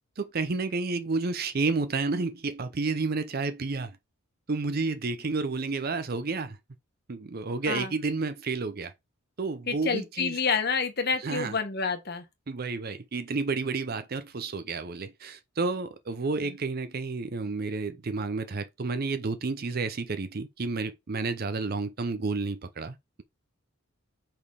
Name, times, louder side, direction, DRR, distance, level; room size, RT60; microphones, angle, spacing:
voice 1, 0.2-4.0 4.5-6.6 7.1-8.9 9.4-10.4 11.2-11.6 12.5-23.2, right 3 dB, 45° right, 0.6 m, -31 dB
voice 2, 9.7-12.2 16.4-16.5, left 5 dB, 50° left, 1.2 m, -28 dB
5.3 x 4.4 x 4.7 m
head